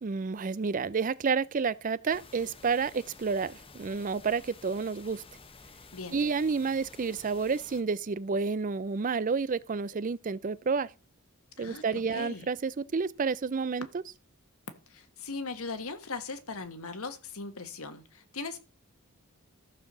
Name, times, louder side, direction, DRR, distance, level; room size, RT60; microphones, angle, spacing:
voice 1, 0.0-5.2 6.1-10.9 11.6-14.0, right 5 dB, 40° right, 0.4 m, -30 dB
sound 1, 2.1-7.8, left 4 dB, 25° left, 0.9 m, -52 dB
voice 2, 5.9-6.2 11.6-12.5 14.9-18.6, left 4 dB, 85° left, 1.6 m, -39 dB
13.5 x 4.7 x 6.8 m
head